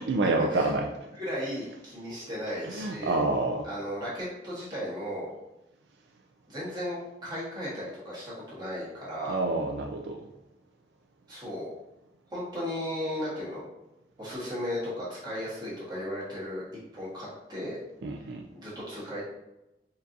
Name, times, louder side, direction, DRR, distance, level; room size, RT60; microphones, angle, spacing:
voice 1, 0.0-1.1 2.6-3.7 9.3-10.2 18.0-18.4, right 2 dB, 75° right, 3 dB, 0.4 m, -28 dB
voice 2, 1.2-3.2 3.6-5.3 6.5-9.4 11.3-11.7 12.3-13.6 14.2-16.6 16.9-17.8 18.5-19.2, equal, 25° right, -8 dB, 1.4 m, -35 dB
4.4 x 2.7 x 2.5 m, 0.95 s
head